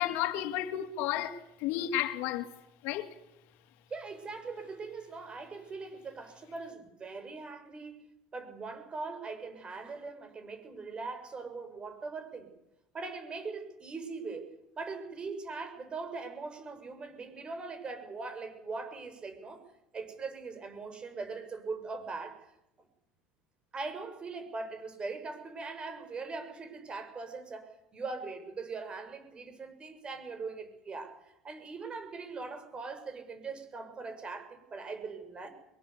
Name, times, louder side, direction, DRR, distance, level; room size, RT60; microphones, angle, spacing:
voice 1, 0.0-2.5 2.8-3.1, left 12 dB, 65° left, 2.6 m, -32 dB
voice 2, 3.9-8.1 8.3-12.5 12.9-19.6 19.9-22.5 23.7-35.5, right 4 dB, 25° right, 6.3 m, -41 dB
24.0 x 22.5 x 8.3 m
supercardioid pair, 120°, 4 cm